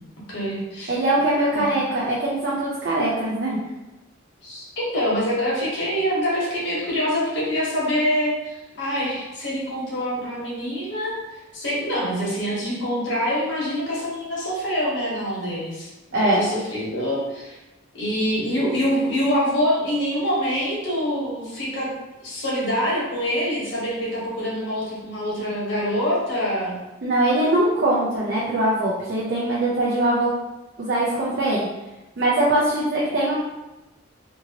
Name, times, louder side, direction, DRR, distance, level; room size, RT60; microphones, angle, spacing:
voice 1, 0.3-0.9 1.5-1.6 4.4-11.1 11.5-17.6 17.9-21.9 22.2-26.7, equal, 60° left, -6 dB, 1.1 m, -25 dB
voice 2, 0.9-3.6 16.1-16.4 27.0-30.3 30.8-31.7 32.2-33.4, right 1 dB, 50° right, -6 dB, 0.5 m, -22 dB
2.8 x 2.7 x 2.8 m, 1.0 s
head